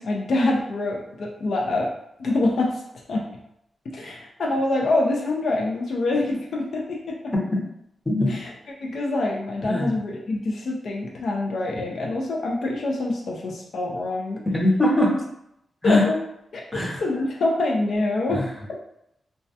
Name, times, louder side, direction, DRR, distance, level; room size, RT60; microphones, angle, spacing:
voice 1, 0.0-1.9 2.2-2.7 3.1-3.2 3.9-7.3 8.3-8.5 8.8-14.4 15.8-16.2 16.5-18.4, left 2 dB, 70° left, -1 dB, 0.4 m, -25 dB
voice 2, 14.5-15.1 15.8-16.0 16.7-17.0 18.3-18.5, left 1 dB, 15° left, -4 dB, 0.7 m, -21 dB
2.2 x 2.1 x 2.6 m, 0.77 s
wide cardioid pair, 100°, 0 cm